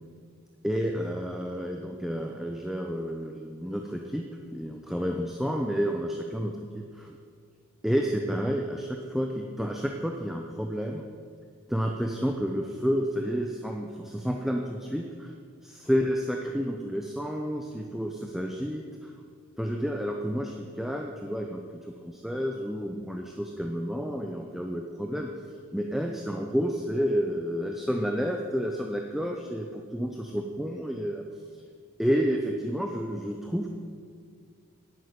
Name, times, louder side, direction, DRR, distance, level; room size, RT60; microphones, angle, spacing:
voice 1, 0.6-4.2 4.5-7.2 7.8-11.1 11.7-15.3 15.6-19.1 19.6-25.3 25.7-31.2 32.0-33.7, equal, ahead, 2 dB, 0.7 m, -30 dB
11.0 x 9.2 x 9.5 m, 2.1 s
head